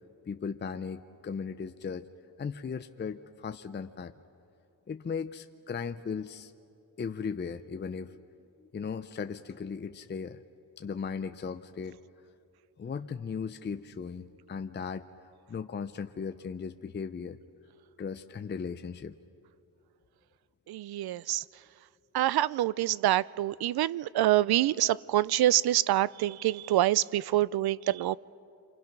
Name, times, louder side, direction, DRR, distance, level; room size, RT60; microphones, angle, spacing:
voice 1, 0.3-2.1 2.4-4.1 4.9-6.5 7.0-8.2 8.7-10.4 10.8-12.0 12.8-15.1 15.5-17.4 18.0-19.1, left 6 dB, 30° left, 9 dB, 0.5 m, -37 dB
voice 2, 20.7-21.4 22.1-28.2, right 14 dB, 75° right, 21 dB, 0.5 m, -26 dB
29.5 x 24.5 x 5.9 m, 2.6 s
cardioid pair, 100°, 38 cm